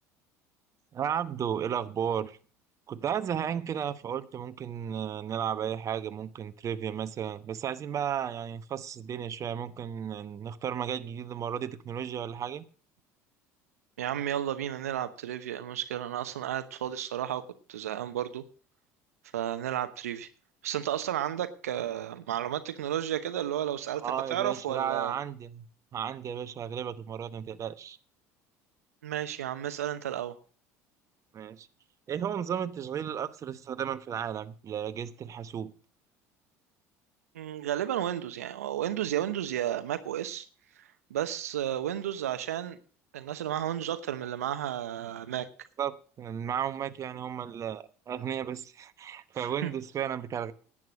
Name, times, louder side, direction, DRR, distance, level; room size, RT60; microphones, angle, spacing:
voice 1, 0.9-2.4 2.9-12.6 24.0-25.6 25.9-28.0 31.3-31.7 32.1-35.7 45.8-50.5, right 8 dB, 40° right, 11 dB, 1.0 m, -34 dB
voice 2, 14.0-17.4 17.7-18.4 19.3-20.3 20.6-24.0 24.3-25.1 29.0-30.3 37.3-40.5 40.8-42.8 43.1-45.5 49.4-49.7, right 11 dB, 90° right, 10 dB, 0.9 m, -32 dB
10.5 x 8.9 x 6.3 m, 0.40 s
hypercardioid pair, 75°, 8 cm